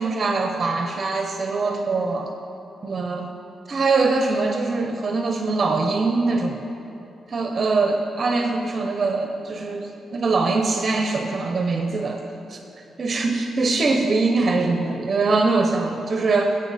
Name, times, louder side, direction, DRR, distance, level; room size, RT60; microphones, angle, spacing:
voice 1, 0.0-2.3 2.8-3.3 3.7-6.7 7.3-12.6 13.0-16.6, right 3 dB, 35° right, 4 dB, 0.6 m, -23 dB
15.5 x 7.9 x 4.1 m, 2.9 s
wide cardioid pair, 155°, 0 cm